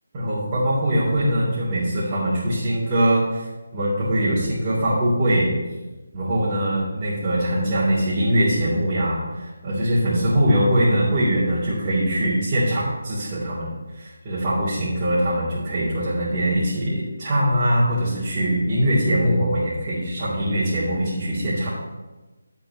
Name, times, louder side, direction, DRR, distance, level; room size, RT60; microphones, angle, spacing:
voice 1, 0.1-3.5 3.7-5.5 6.1-21.8, equal, 25° right, -12 dB, 3.1 m, -22 dB
13.0 x 7.8 x 3.0 m, 1.2 s
figure-of-eight pair, 160°, 0 cm